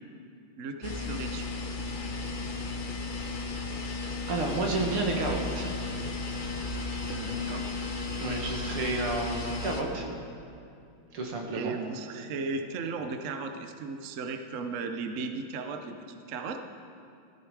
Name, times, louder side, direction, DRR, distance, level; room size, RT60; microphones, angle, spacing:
voice 1, 0.6-1.5 7.1-7.7 11.5-16.6, right 4 dB, 55° right, 6 dB, 0.9 m, -36 dB
sound 1, 0.8-9.8, left 3 dB, 40° left, 0.7 m, -34 dB
voice 2, 4.3-5.7 8.2-10.1 11.1-11.8, right 2 dB, 85° right, 1 dB, 2.6 m, -31 dB
15.5 x 14.0 x 4.9 m, 2.5 s
omnidirectional pair, 2.3 m